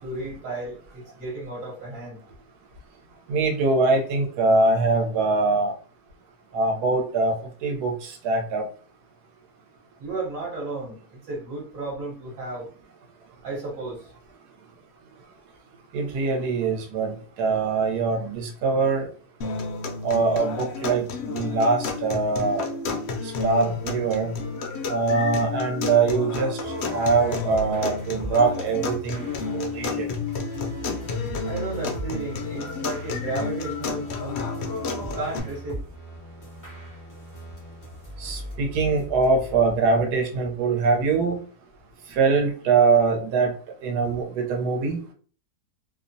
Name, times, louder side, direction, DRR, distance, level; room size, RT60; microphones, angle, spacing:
voice 1, 0.0-2.2 10.0-12.7 13.4-14.1 31.4-34.5 35.0-35.8, right 3 dB, 60° right, -4 dB, 1.2 m, -33 dB
voice 2, 3.3-5.7 6.5-7.3 7.6-8.6 15.9-19.1 20.0-22.6 23.2-24.3 24.9-30.1 38.2-41.4 42.1-43.5 43.8-45.0, right 4 dB, 85° right, 2 dB, 1.2 m, -23 dB
sound 1, 19.4-35.4, left 4 dB, 80° left, 0.5 m, -31 dB
sound 2, 26.6-39.9, equal, 30° left, 0.3 m, -40 dB
2.8 x 2.0 x 2.5 m, 0.41 s
omnidirectional pair, 1.7 m